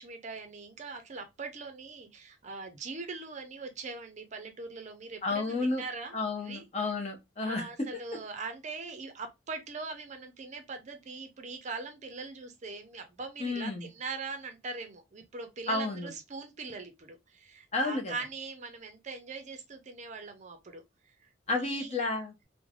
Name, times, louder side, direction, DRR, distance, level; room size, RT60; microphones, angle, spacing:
voice 1, 0.0-6.6 7.4-21.3 21.6-21.9, right 4 dB, 40° right, 0.5 m, -41 dB
voice 2, 5.2-5.8 6.1-7.7 13.4-13.9 15.7-16.1 17.7-18.1 21.5-22.3, left 3 dB, 35° left, 0.7 m, -31 dB
3.2 x 2.1 x 2.3 m
head